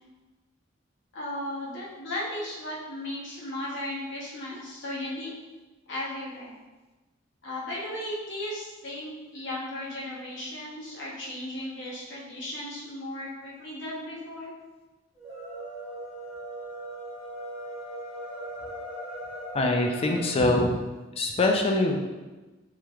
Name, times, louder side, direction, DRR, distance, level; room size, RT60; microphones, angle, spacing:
voice 1, 1.1-5.3 5.9-6.6 7.4-14.5 20.4-20.7, left 1 dB, 65° left, -6 dB, 0.9 m, -35 dB
sound 1, 15.1-20.5, right 1 dB, 15° right, 1.3 m, -39 dB
voice 2, 19.5-20.7 21.2-22.0, left 2 dB, 30° left, 2 dB, 0.3 m, -23 dB
3.2 x 3.0 x 2.3 m, 1.2 s
head